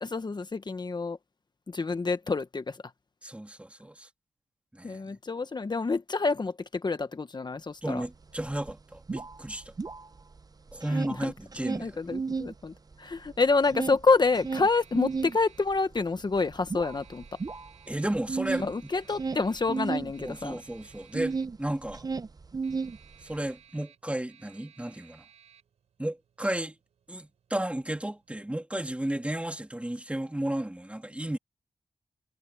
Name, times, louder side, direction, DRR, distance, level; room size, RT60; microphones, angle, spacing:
voice 1, 0.0-1.2 1.7-2.8 4.8-8.0 11.2-11.3 11.8-12.7 13.0-17.2 18.6-20.6, left 4 dB, 40° left, 1.2 m, -28 dB
voice 2, 3.2-4.1 4.7-5.0 7.8-9.7 10.7-12.2 17.9-18.9 20.2-22.1 23.2-25.2 26.0-26.8 27.1-31.4, right 1 dB, 10° right, 3.0 m, -33 dB
sound 1, 8.0-8.1 8.4-10.4 10.7-12.5 12.9-21.6 21.8-23.4, right 4 dB, 35° right, 0.7 m, -34 dB
sound 2, 12.5-28.4, right 9 dB, 90° right, 6.5 m, -60 dB
cardioid pair, 55°, 11 cm